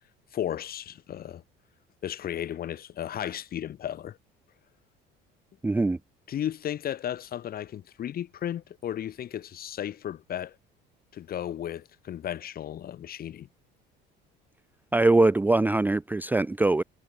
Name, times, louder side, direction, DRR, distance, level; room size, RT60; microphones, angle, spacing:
voice 1, 0.3-1.4 2.0-4.2 6.3-10.5 11.1-13.5, left 10 dB, 45° left, 3.2 m, -34 dB
voice 2, 5.6-6.0 14.9-16.8, right 2 dB, 10° right, 0.6 m, -22 dB
cardioid pair, 120°, 20 cm